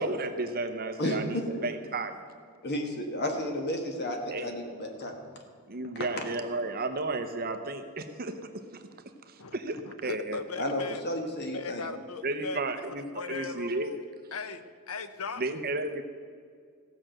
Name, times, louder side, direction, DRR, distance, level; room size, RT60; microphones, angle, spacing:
voice 1, 0.0-2.2 4.3-4.5 5.7-8.3 9.3-10.4 12.2-13.9 15.4-16.0, right 2 dB, 40° right, 7 dB, 0.8 m, -33 dB
voice 2, 2.6-5.1 5.9-6.2 10.6-11.9, left 1 dB, 50° left, 3 dB, 1.4 m, -32 dB
voice 3, 9.8-11.0 11.5-12.6 13.1-15.4, left 4 dB, 70° left, 11 dB, 0.8 m, -38 dB
15.5 x 6.2 x 7.7 m, 2.1 s
head